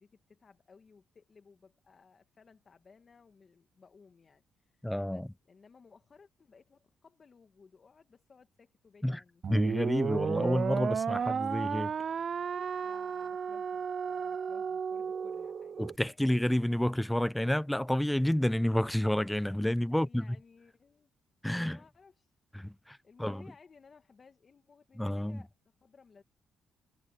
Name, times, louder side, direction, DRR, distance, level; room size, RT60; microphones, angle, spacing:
voice 1, 0.0-9.4 12.8-16.2 19.8-21.1 21.7-22.3 23.0-25.5 25.8-26.2, left 5 dB, 40° left, 1.9 m, -60 dB
voice 2, 4.8-5.3 9.0-9.2 9.5-11.9 15.8-20.2 21.4-21.8 22.5-23.4 25.0-25.4, left 1 dB, 5° left, 0.5 m, -29 dB
sound 1, 9.4-16.0, right 6 dB, 50° right, 0.3 m, -33 dB
cardioid pair, 90°, 0 cm